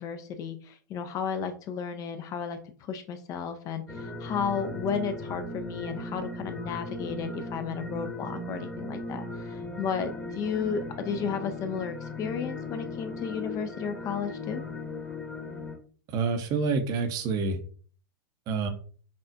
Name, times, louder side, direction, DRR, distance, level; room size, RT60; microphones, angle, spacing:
voice 1, 0.0-14.6, left 6 dB, 30° left, 8 dB, 0.4 m, -33 dB
sound 1, 3.9-15.8, left 2 dB, 10° left, 1.0 m, -37 dB
voice 2, 16.1-17.6 18.5-18.7, right 4 dB, 35° right, 7 dB, 0.7 m, -27 dB
5.5 x 2.4 x 2.4 m, 0.42 s
figure-of-eight pair, 95°, 11 cm